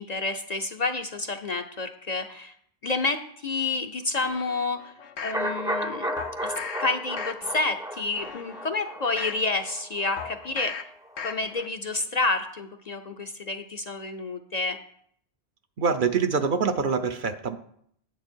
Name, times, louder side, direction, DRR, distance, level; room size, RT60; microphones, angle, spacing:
voice 1, 0.0-2.5 2.8-4.9 5.2-6.1 6.4-6.5 6.8-10.8 11.2-14.8, left 3 dB, 45° left, 6 dB, 0.6 m, -29 dB
sound 1, 4.2-5.4 6.2-6.8 7.2-7.7 8.1-9.4 10.2-10.8 11.2-11.7 12.1-12.2, left 6 dB, 85° left, 1.1 m, -38 dB
sound 2, 5.3-11.2 11.5-11.6, equal, 5° right, 0.4 m, -34 dB
voice 2, 15.8-17.6, right 5 dB, 55° right, 8 dB, 0.7 m, -25 dB
9.3 x 8.1 x 4.5 m, 0.66 s
omnidirectional pair, 1.1 m